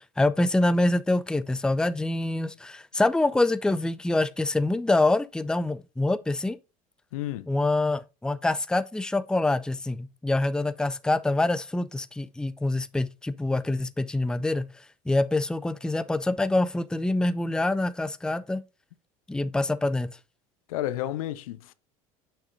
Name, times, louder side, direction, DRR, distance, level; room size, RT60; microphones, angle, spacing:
voice 1, 0.0-6.6 7.5-14.6 15.1-18.6 19.3-20.2, left 2 dB, 5° left, 0.5 m, -25 dB
voice 2, 7.1-7.5 20.7-21.7, left 13 dB, 75° left, 0.6 m, -31 dB
6.7 x 6.1 x 2.6 m
hypercardioid pair, 75°, 18 cm